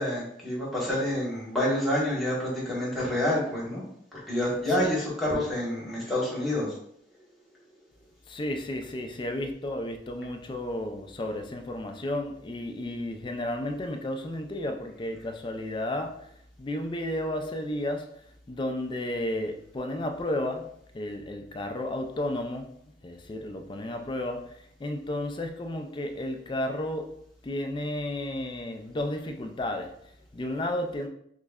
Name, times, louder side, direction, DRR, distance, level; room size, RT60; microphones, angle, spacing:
voice 1, 0.0-3.8 4.1-6.7, left 1 dB, ahead, -6 dB, 1.2 m, -28 dB
voice 2, 8.3-16.3 16.6-18.2 18.5-27.2 27.4-31.1, left 1 dB, 25° left, 6 dB, 0.4 m, -33 dB
6.1 x 2.1 x 2.3 m, 0.70 s
head